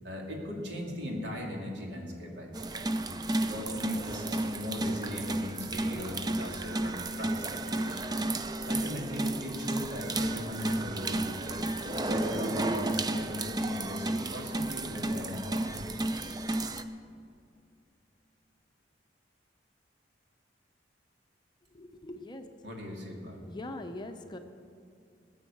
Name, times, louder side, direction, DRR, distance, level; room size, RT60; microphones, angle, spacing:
voice 1, 0.0-3.1 3.4-8.2 8.7-11.6 12.1-15.8 22.6-23.4, left 1 dB, 65° right, -1 dB, 2.8 m, -38 dB
sound 1, 2.5-16.8, right 2 dB, 20° right, 0.5 m, -32 dB
voice 2, 21.7-22.5 23.5-24.4, left 2 dB, 25° left, 6 dB, 0.6 m, -41 dB
19.5 x 7.2 x 7.1 m, 2.4 s
head